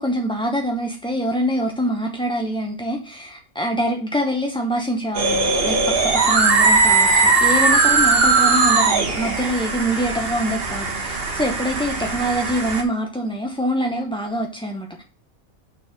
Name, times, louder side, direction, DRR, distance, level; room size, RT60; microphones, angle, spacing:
voice 1, 0.0-15.0, equal, 5° left, 2 dB, 0.4 m, -25 dB
sound 1, 5.1-12.8, right 4 dB, 45° right, 1.3 m, -19 dB
6.7 x 4.1 x 5.9 m, 0.36 s
omnidirectional pair, 1.5 m